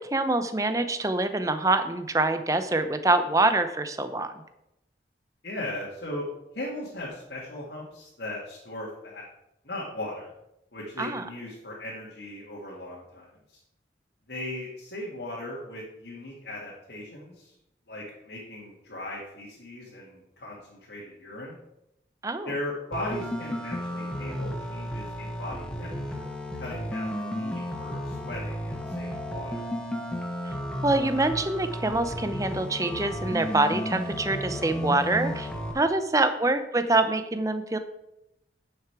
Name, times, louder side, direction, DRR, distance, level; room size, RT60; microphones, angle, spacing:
voice 1, 0.0-4.3 11.0-11.2 22.2-22.5 30.8-35.5 35.7-37.8, right 2 dB, 20° right, 9 dB, 0.6 m, -25 dB
voice 2, 5.4-6.3 6.5-9.3 9.6-10.3 10.7-13.6 14.3-17.5 17.9-21.6 22.4-29.7, left 1 dB, 75° left, -5 dB, 2.1 m, -38 dB
sound 1, 22.9-35.7, equal, 5° left, 1.1 m, -33 dB
10.5 x 6.7 x 4.7 m, 0.87 s
head